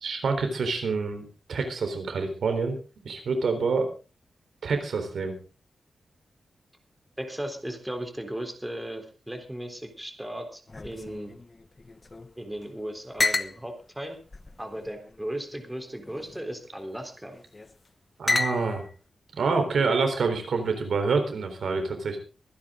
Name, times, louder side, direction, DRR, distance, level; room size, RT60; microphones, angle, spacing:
voice 1, 0.0-2.8 3.1-3.9 4.6-5.4 18.2-18.9 19.4-22.2, right 4 dB, 75° right, 6 dB, 3.8 m, -27 dB
voice 2, 7.2-11.3 12.4-14.2 14.6-17.4, right 1 dB, 10° right, 5 dB, 3.6 m, -36 dB
sound 1, 10.7-12.3 12.6-12.7 13.2-13.6 14.3-15.2 16.0-16.4 17.3-17.7 18.3-18.9, left 3 dB, 30° left, 0.9 m, -31 dB
24.0 x 10.5 x 3.8 m, 0.34 s
wide cardioid pair, 90°, 0 cm